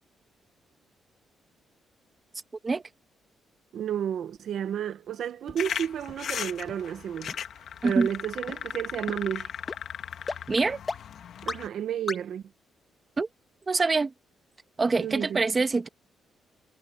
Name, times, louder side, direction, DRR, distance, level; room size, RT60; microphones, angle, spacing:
voice 1, 3.7-7.4 7.8-9.5 11.4-12.4 15.0-15.4, right 9 dB, 65° right, 0.9 m, -31 dB
sound 1, 5.5-5.6 6.1-6.2 6.7-6.8 7.3-7.4 7.9-8.0 8.5-8.6 9.1-9.2 9.7-9.8 10.3-10.4 10.9-11.0 11.5-11.6 12.1-12.2, left 3 dB, 25° left, 1.5 m, -34 dB
sound 2, 5.6-11.7, left 8 dB, 60° left, 1.4 m, -37 dB
voice 2, 10.5-10.8 13.2-13.3 13.7-14.1 14.8-15.9, right 3 dB, 25° right, 1.3 m, -25 dB
cardioid pair, 135°, 0 cm